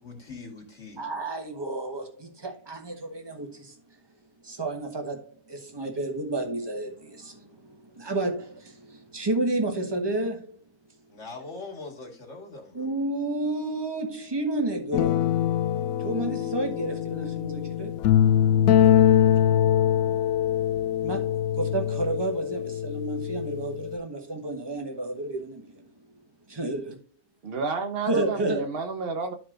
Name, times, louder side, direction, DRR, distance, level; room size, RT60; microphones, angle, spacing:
voice 1, 0.0-1.0 11.1-12.9, left 3 dB, 50° left, 2.0 m, -41 dB
voice 2, 1.0-3.8 4.4-10.6 12.7-15.4 16.0-18.0 21.0-25.9 26.5-27.0 28.1-28.6, right 2 dB, 20° right, 1.1 m, -31 dB
sound 1, 14.9-24.0, left 10 dB, 75° left, 1.0 m, -23 dB
voice 3, 27.4-29.4, right 4 dB, 45° right, 1.1 m, -30 dB
12.5 x 4.7 x 2.5 m
omnidirectional pair, 1.6 m